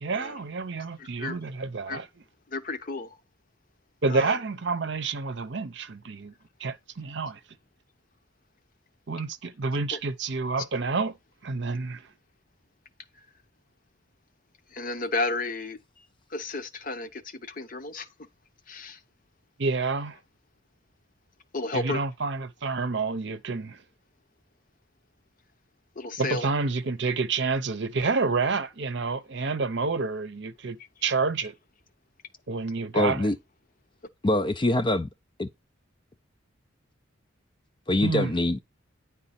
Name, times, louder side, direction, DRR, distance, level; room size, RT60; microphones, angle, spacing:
voice 1, 0.0-2.1 4.0-6.3 6.6-7.4 9.1-11.2 11.4-12.0 19.6-20.2 21.7-23.8 26.2-30.8 31.0-31.5 32.5-33.3 38.0-38.3, right 4 dB, 55° right, 0.7 m, -29 dB
voice 2, 1.0-1.4 1.9-2.0 2.5-3.2 4.1-4.3 9.9-10.0 14.7-16.1 16.3-18.1 18.7-19.0 21.5-22.0 26.0-26.5, left 3 dB, 40° left, 0.7 m, -32 dB
voice 3, 32.9-33.4 34.2-35.1 35.4-35.5 37.9-38.6, left 1 dB, 25° left, 0.4 m, -24 dB
9.9 x 3.7 x 4.2 m
head